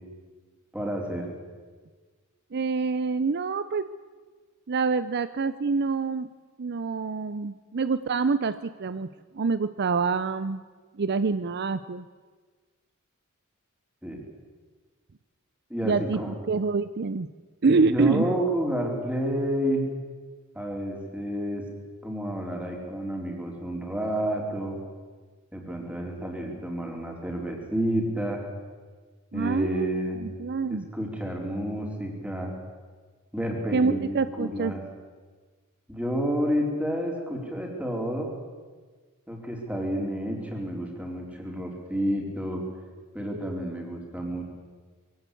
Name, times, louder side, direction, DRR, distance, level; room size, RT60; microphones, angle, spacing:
voice 1, 0.7-1.3 14.0-14.2 15.7-16.4 17.7-19.8 20.5-21.6 22.0-24.8 25.5-28.4 29.3-30.2 30.7-32.5 33.3-34.8 35.9-38.4 39.3-42.6 43.1-44.4, equal, 5° right, 0 dB, 4.1 m, -30 dB
voice 2, 2.5-3.9 4.7-6.3 6.6-9.1 9.3-10.6 11.0-12.1 15.8-17.3 17.6-18.4 29.3-29.9 30.1-30.9 33.7-34.7, right 4 dB, 50° right, 14 dB, 0.6 m, -26 dB
22.0 x 17.0 x 8.4 m, 1.4 s
head